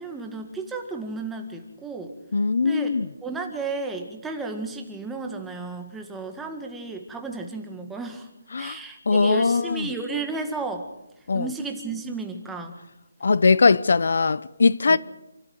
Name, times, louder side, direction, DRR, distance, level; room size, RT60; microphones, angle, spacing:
voice 1, 0.0-2.1 2.6-2.9 3.2-8.3 8.6-10.9 11.3-12.8 14.9-15.0, right 3 dB, 5° right, 1.8 m, -33 dB
voice 2, 2.3-3.1 8.5-8.8 9.1-9.9 11.3-11.5 13.2-15.0, left 4 dB, 70° left, 0.7 m, -20 dB
28.0 x 13.0 x 8.1 m
hypercardioid pair, 165°, 0 cm